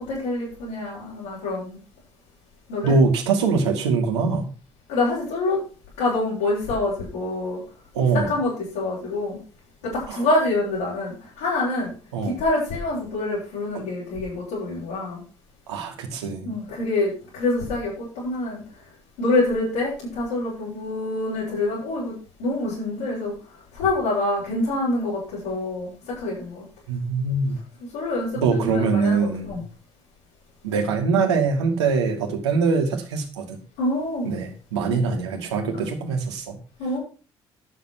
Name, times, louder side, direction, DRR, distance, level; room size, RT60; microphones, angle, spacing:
voice 1, 0.0-1.8 2.7-3.0 4.9-5.6 6.0-7.6 8.1-9.4 9.8-11.9 12.2-15.2 16.4-18.6 19.2-23.3 23.7-26.6 27.9-29.6 33.8-34.3 34.9-35.0 35.7-35.8 36.8-37.0, left 2 dB, 75° left, -8 dB, 7.3 m, -26 dB
voice 2, 2.8-4.4 7.9-8.3 10.1-10.2 12.1-12.4 13.7-13.8 15.7-16.5 26.9-27.6 28.4-29.5 30.6-33.6 34.2-36.6, right 4 dB, 80° right, 3 dB, 2.5 m, -23 dB
11.5 x 7.8 x 6.1 m, 0.36 s
figure-of-eight pair, 45°, 14 cm